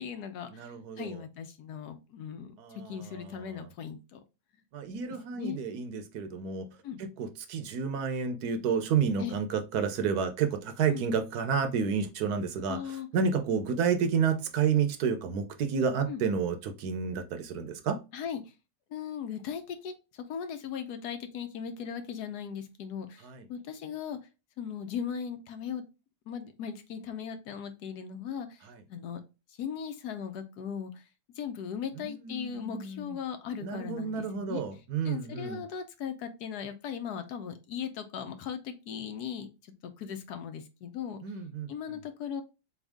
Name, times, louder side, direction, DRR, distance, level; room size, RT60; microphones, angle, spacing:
voice 1, 0.0-0.7 1.0-4.2 5.3-5.6 6.8-7.0 9.2-9.4 10.9-11.1 12.7-13.1 16.1-16.2 18.1-18.4 18.9-24.2 24.6-25.8 26.3-28.6 28.9-29.2 29.6-31.0 31.4-34.6 35.0-41.2 41.7-42.4, left 7 dB, 75° left, 1.2 m, -38 dB
voice 2, 0.5-1.2 2.6-2.9 3.4-3.6 4.7-6.6 7.2-12.8 13.1-18.0 23.2-23.4 32.0-33.2 33.6-35.6 41.2-41.7, right 6 dB, 75° right, 1.2 m, -30 dB
4.0 x 3.6 x 3.4 m
omnidirectional pair, 1.8 m